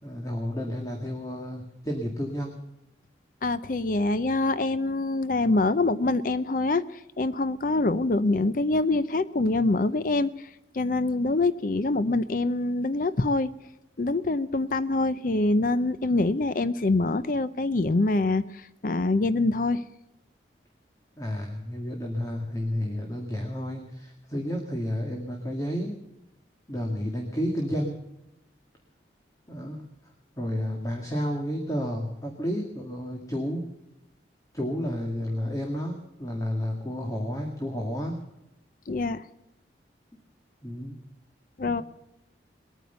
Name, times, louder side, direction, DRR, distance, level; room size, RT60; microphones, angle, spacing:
voice 1, 0.0-2.6 21.2-26.0 26.7-28.0 29.5-29.8 30.4-33.7 34.5-38.2 40.6-41.0 41.6-41.8, equal, 20° left, 1 dB, 1.9 m, -31 dB
voice 2, 3.4-10.5 10.7-13.5 14.0-19.8 38.9-39.2 41.6-41.8, left 2 dB, 50° left, 14 dB, 0.6 m, -25 dB
21.0 x 9.4 x 6.8 m, 0.92 s
head